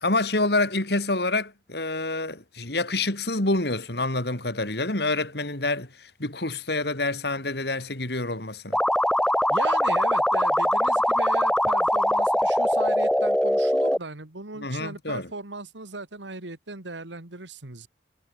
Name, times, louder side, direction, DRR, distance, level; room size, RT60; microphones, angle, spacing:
voice 1, 0.0-8.8 14.6-15.3, left 2 dB, 65° left, 3.3 m, -27 dB
sound 1, 8.7-14.0, equal, 5° left, 1.1 m, -22 dB
voice 2, 9.5-17.9, right 3 dB, 85° right, 2.5 m, -37 dB
head